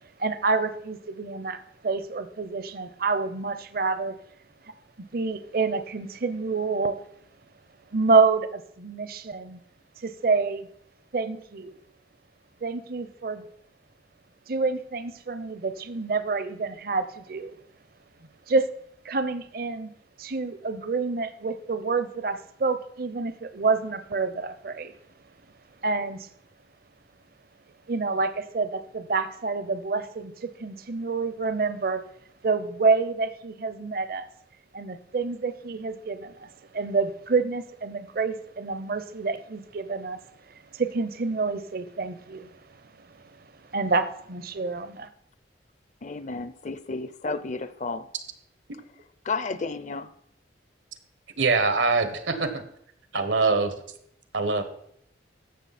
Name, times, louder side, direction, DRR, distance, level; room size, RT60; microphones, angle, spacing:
voice 1, 0.2-4.2 4.6-7.0 7.9-9.6 10.0-10.7 11.1-11.7 12.6-13.5 14.5-17.5 18.5-18.7 19.0-19.9 20.2-24.9 25.8-26.3 27.9-32.0 32.4-34.3 34.7-40.2 40.5-42.5 43.0-43.1 43.7-45.1, right 4 dB, 50° right, 12 dB, 0.7 m, -28 dB
voice 2, 46.0-48.1 49.2-50.1, left 3 dB, 40° left, 14 dB, 0.5 m, -32 dB
voice 3, 51.4-52.6 53.1-53.7 54.3-54.6, right 4 dB, 85° right, 8 dB, 1.3 m, -23 dB
14.5 x 6.3 x 4.2 m, 0.70 s
head